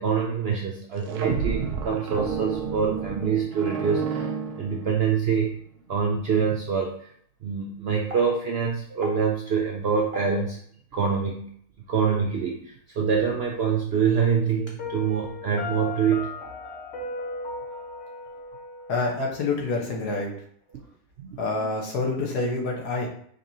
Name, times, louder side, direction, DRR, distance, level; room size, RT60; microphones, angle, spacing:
voice 1, 0.0-4.3 4.6-5.6 5.9-7.1 7.4-10.6 10.9-11.5 11.9-16.3 21.2-21.7, right 6 dB, 70° right, 0 dB, 0.6 m, -25 dB
sound 1, 0.9-5.2, right 6 dB, 85° right, 1.2 m, -30 dB
Piano, 14.8-19.7, left 4 dB, 55° left, 1.2 m, -37 dB
voice 2, 18.9-20.3 21.4-23.1, left 3 dB, 85° left, -1 dB, 1.6 m, -27 dB
5.2 x 3.3 x 2.7 m, 0.62 s
omnidirectional pair, 1.6 m